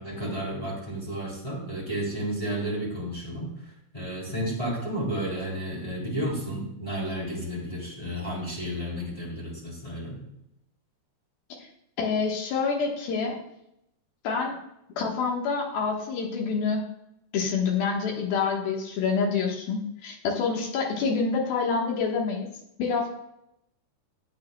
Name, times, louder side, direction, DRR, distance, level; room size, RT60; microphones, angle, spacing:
voice 1, 0.0-3.5 3.9-10.2, right 1 dB, 10° left, -5 dB, 2.4 m, -32 dB
voice 2, 12.0-13.4 14.2-14.6 15.0-16.8 17.3-22.5 22.8-23.1, left 5 dB, 65° left, 0 dB, 2.9 m, -27 dB
12.5 x 8.4 x 2.2 m, 0.80 s
omnidirectional pair, 4.9 m